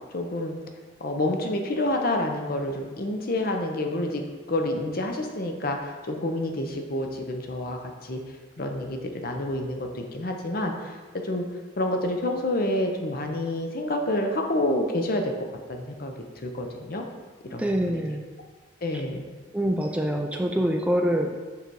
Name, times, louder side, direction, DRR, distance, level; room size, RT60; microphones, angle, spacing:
voice 1, 0.1-0.5 1.0-4.2 4.5-8.2 8.6-11.0 11.2-11.4 11.8-15.3 15.7-16.1 16.4-17.0 17.5-18.0 18.8-19.2, left 1 dB, 50° left, 3 dB, 0.7 m, -28 dB
voice 2, 17.5-18.2 18.9-19.0 19.5-21.5, equal, 5° right, 2 dB, 0.3 m, -25 dB
6.8 x 3.9 x 4.7 m, 1.3 s
head